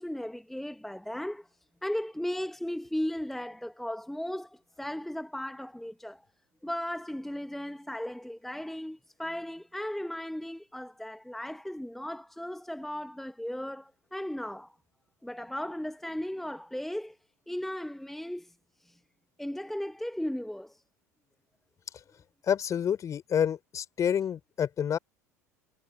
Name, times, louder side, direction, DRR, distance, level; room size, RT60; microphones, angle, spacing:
voice 1, 0.0-1.5 1.8-6.3 6.6-14.8 15.2-17.2 17.5-18.5 18.8-19.0 19.4-20.8, left 1 dB, 5° left, 1.3 m, -36 dB
voice 2, 22.5-25.0, left 8 dB, 35° left, 4.3 m, -28 dB
hypercardioid pair, 70°, 9 cm